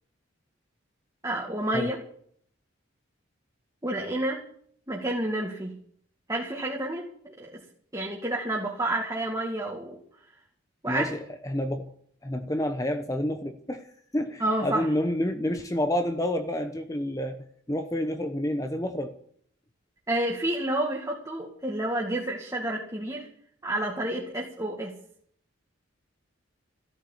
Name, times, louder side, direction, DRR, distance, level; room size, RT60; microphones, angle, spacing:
voice 1, 1.2-2.0 3.8-4.4 4.9-5.7 6.3-7.6 7.9-10.0 10.8-11.1 14.4-14.9 20.1-23.3 23.6-24.9, right 1 dB, 15° right, 2.1 m, -29 dB
voice 2, 10.9-11.9 12.2-13.8 14.1-19.1, left 1 dB, 15° left, 0.9 m, -29 dB
15.0 x 13.0 x 7.3 m
head